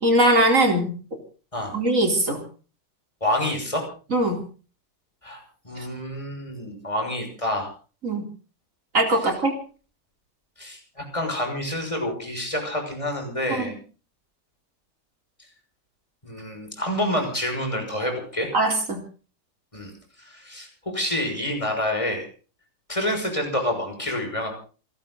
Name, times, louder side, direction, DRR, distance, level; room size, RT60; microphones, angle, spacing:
voice 1, 0.0-1.0 1.7-2.4 4.1-4.5 5.8-5.9 8.0-8.3 8.9-9.5 13.5-13.7 18.5-19.0, right 1 dB, 45° right, 3 dB, 4.3 m, -21 dB
voice 2, 3.2-3.8 5.2-7.7 10.6-13.7 16.2-18.5 19.7-19.9 20.2-22.3 22.9-24.5, left 1 dB, 15° left, 3 dB, 6.3 m, -28 dB
28.5 x 12.5 x 4.0 m, 0.38 s
omnidirectional pair, 1.9 m